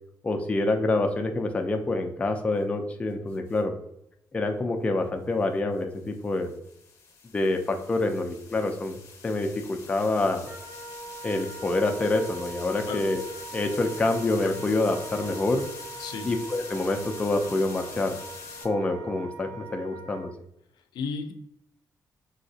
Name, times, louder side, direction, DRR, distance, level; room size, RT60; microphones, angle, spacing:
voice 1, 0.2-3.7 4.3-6.5 7.3-9.0 9.2-10.5 11.2-13.2 13.5-15.6 16.2-18.2 18.6-20.3, left 2 dB, 20° left, 4 dB, 0.3 m, -26 dB
sound 1, 3.3-3.6 5.8-18.6, left 4 dB, 50° left, 0.7 m, -45 dB
Wind instrument woodwind instrument, 10.4-20.3, right 3 dB, 65° right, 0.8 m, -43 dB
voice 2, 16.0-16.3 20.9-21.3, left 5 dB, 85° left, 7 dB, 0.4 m, -33 dB
3.3 x 2.8 x 2.7 m, 0.76 s
wide cardioid pair, 165°, 7 cm